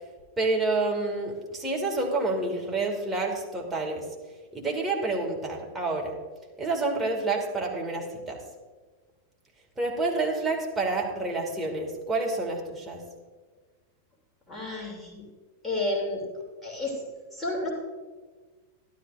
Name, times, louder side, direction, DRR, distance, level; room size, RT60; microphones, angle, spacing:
voice 1, 0.4-4.1 4.5-6.2 6.6-8.4 9.8-13.0, right 3 dB, 10° right, -1 dB, 2.1 m, -28 dB
voice 2, 14.5-15.2 15.6-16.2 16.6-17.1 17.3-17.7, left 2 dB, 5° left, -4 dB, 2.9 m, -31 dB
12.5 x 12.0 x 2.5 m, 1.4 s
figure-of-eight pair, 90°, 0 cm